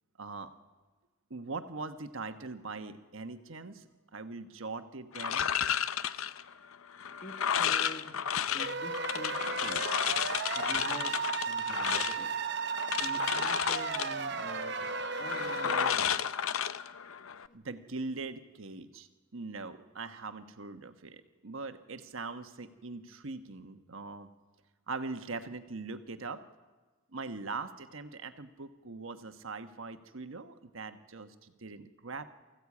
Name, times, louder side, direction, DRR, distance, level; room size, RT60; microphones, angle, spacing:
voice 1, 0.2-0.5 1.3-5.5 17.5-24.3 24.9-26.4 27.1-32.3, right 3 dB, 75° right, 8 dB, 1.2 m, -41 dB
sound 1, 5.1-17.5, left 8 dB, 80° left, 0.6 m, -33 dB
voice 2, 7.2-8.2 8.5-10.3 10.5-11.2 11.5-12.3 12.9-14.8 15.2-16.2 17.5-17.6, left 1 dB, 40° left, 5 dB, 1.3 m, -46 dB
sound 2, 8.6-15.9, right 5 dB, 50° right, 0.7 m, -35 dB
23.5 x 15.0 x 8.5 m, 1.3 s
head